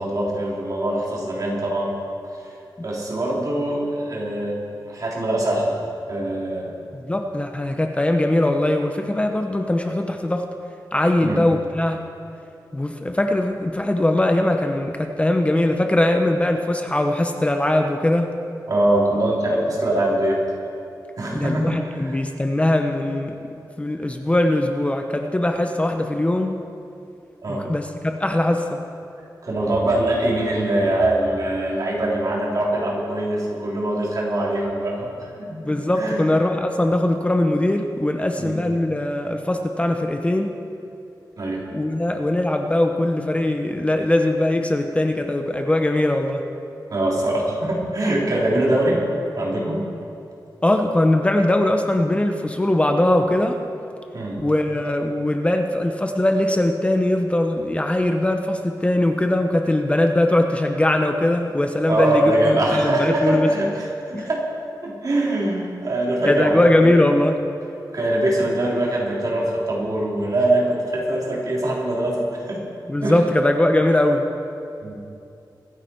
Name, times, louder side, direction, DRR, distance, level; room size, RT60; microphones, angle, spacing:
voice 1, 0.0-1.9 2.8-4.5 4.9-5.8 6.1-6.7 11.2-11.4 18.7-20.4 21.2-22.2 27.4-27.6 29.4-35.1 36.0-36.3 38.4-38.5 41.4-41.6 46.9-49.0 49.3-49.8 54.1-54.4 61.9-64.4 64.8-66.9 67.9-72.6 73.0-73.2 74.8-75.0, right 1 dB, 55° right, -4 dB, 3.2 m, -23 dB
voice 2, 6.9-10.5 10.9-12.0 12.7-18.3 21.3-23.3 23.8-26.6 27.5-28.8 35.6-40.5 41.7-46.4 50.6-53.6 54.4-63.5 64.1-64.3 66.2-67.4 72.9-74.3, left 1 dB, 15° left, 5 dB, 0.7 m, -21 dB
24.5 x 9.8 x 4.4 m, 2.7 s
wide cardioid pair, 150°, 8 cm